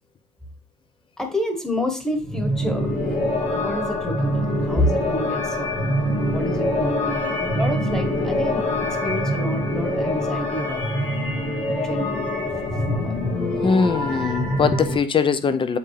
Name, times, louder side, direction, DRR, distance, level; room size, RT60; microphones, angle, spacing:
voice 1, 1.2-8.7 9.0-11.0 11.8-12.3 12.7-13.2, equal, 5° left, 1.4 m, -28 dB
sound 1, 2.2-15.0, left 1 dB, 65° left, 2.6 m, -24 dB
voice 2, 13.6-15.8, left 5 dB, 30° left, 0.7 m, -21 dB
8.1 x 3.7 x 3.3 m
cardioid pair, 110°, 17 cm